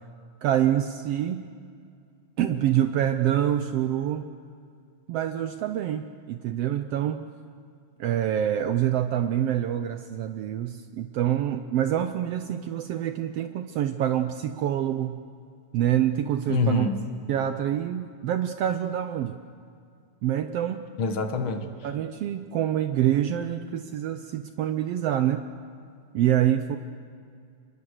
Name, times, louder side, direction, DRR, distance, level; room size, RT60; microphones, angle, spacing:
voice 1, 0.4-1.4 2.4-4.3 5.1-7.3 8.0-15.2 15.7-16.9 17.3-19.4 20.2-20.8 21.8-25.5 26.1-26.8, right 11 dB, 80° right, 9 dB, 1.4 m, -26 dB
voice 2, 16.5-17.0 21.0-21.6, left 4 dB, 50° left, 7 dB, 1.8 m, -25 dB
26.0 x 21.5 x 6.5 m, 2.2 s
omnidirectional pair, 3.5 m